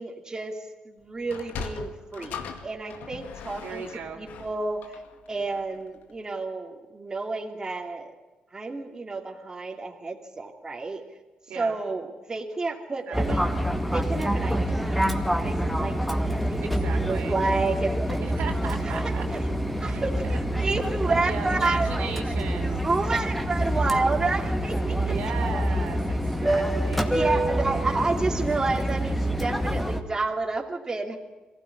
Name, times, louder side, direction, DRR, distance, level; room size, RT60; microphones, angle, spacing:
voice 1, 0.0-3.8 4.2-5.0 5.3-8.1 8.5-11.0 11.5-13.5 13.9-16.0 16.3-18.2 18.8-19.4 19.8-22.0 22.8-25.1 27.1-31.2, right 3 dB, 25° right, 2 dB, 2.8 m, -30 dB
Sliding door, 1.2-5.8, left 6 dB, 90° left, 2.1 m, -40 dB
voice 2, 3.6-4.2 11.5-11.7 13.1-13.4 16.6-17.4 18.2-19.3 19.8-20.4 21.0-22.9 25.0-28.0, right 6 dB, 75° right, 3 dB, 3.4 m, -37 dB
Fixed-wing aircraft airplane, 13.1-30.0, right 1 dB, ahead, 2.2 m, -26 dB
23.0 x 16.0 x 10.0 m, 1.2 s
cardioid pair, 100°, 3 cm